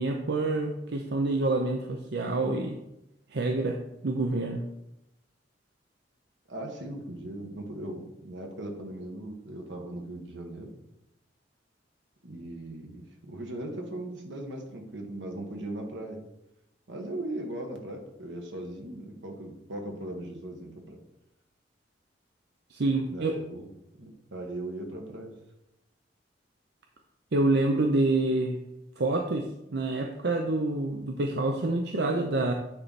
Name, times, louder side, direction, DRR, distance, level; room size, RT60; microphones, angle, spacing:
voice 1, 0.0-2.8 3.3-4.6 22.7-23.3 27.3-28.6 29.0-32.5, right 2 dB, 65° right, 3 dB, 0.6 m, -27 dB
voice 2, 6.5-10.7 12.2-16.2 16.9-21.0 23.0-23.7 24.0-25.3, right 1 dB, 85° right, 2 dB, 1.5 m, -38 dB
9.8 x 4.5 x 4.2 m, 0.87 s
head